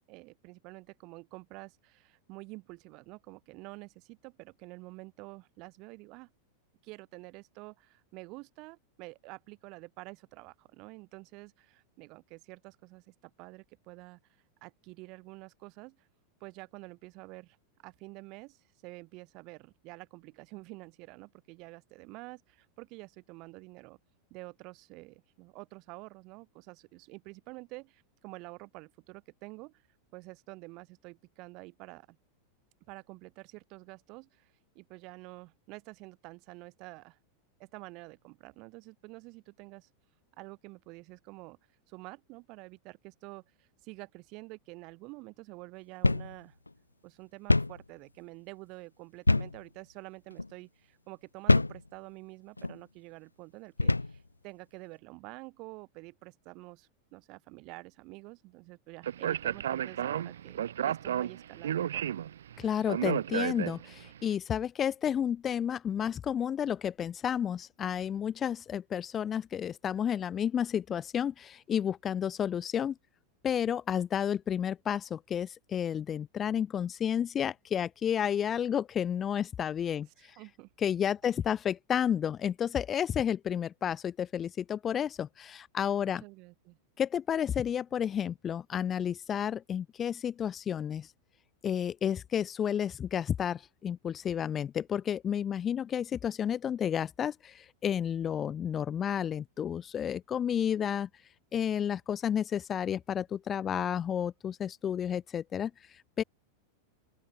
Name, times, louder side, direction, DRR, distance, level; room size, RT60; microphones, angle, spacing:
voice 1, 0.1-6.3 6.8-14.2 14.6-16.1 16.4-17.6 17.8-24.0 24.3-29.8 30.1-32.2 32.9-37.2 37.6-39.9 40.4-41.6 41.9-46.6 47.0-62.2 80.2-80.7 86.2-86.8, right 25 dB, 40° right, 7.4 m, -48 dB
sound 1, 46.0-46.3 46.7-46.8 47.5-47.8 49.3-49.6 50.3-50.5 51.5-51.8 52.6-52.8 53.8-54.2, left 2 dB, 80° left, 0.8 m, -25 dB
Speech, 59.0-64.1, right 10 dB, 65° right, 2.1 m, -33 dB
voice 2, 62.6-72.9 73.4-80.1 80.8-86.2 87.0-91.1 91.6-101.1 101.5-105.7 106.2-106.3, left 9 dB, 25° left, 1.3 m, -31 dB
open air
figure-of-eight pair, 90°, 0 cm